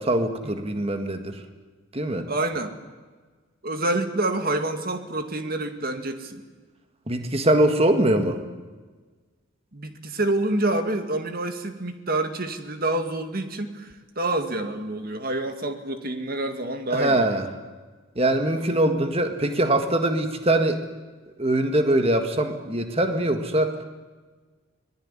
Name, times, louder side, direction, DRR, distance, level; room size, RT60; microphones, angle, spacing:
voice 1, 0.0-1.4 1.9-2.3 7.1-8.4 16.9-17.5 18.2-20.8 21.4-23.9, right 1 dB, 25° right, 6 dB, 1.8 m, -22 dB
voice 2, 2.3-2.7 3.6-6.4 9.7-17.3, right 2 dB, 45° right, 7 dB, 2.1 m, -27 dB
24.5 x 19.5 x 9.9 m, 1.4 s
head